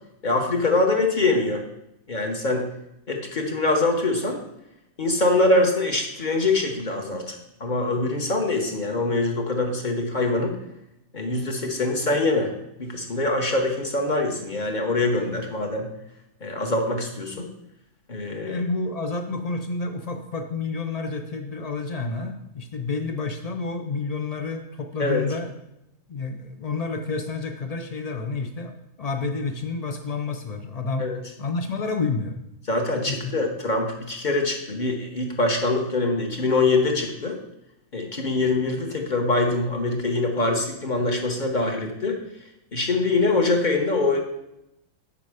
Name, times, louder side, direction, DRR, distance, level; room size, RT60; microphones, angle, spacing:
voice 1, 0.2-1.6 2.1-2.6 3.1-4.4 5.0-10.6 11.1-12.5 12.8-15.9 16.4-17.5 18.1-18.6 25.0-25.3 31.0-31.2 32.7-37.4 37.9-42.2 42.7-44.2, left 2 dB, 35° left, 2 dB, 1.1 m, -24 dB
voice 2, 18.4-25.5 26.1-31.1 31.4-32.4 33.1-33.4, left 3 dB, 80° left, 5 dB, 0.3 m, -29 dB
8.4 x 5.8 x 4.9 m, 0.85 s
omnidirectional pair, 1.6 m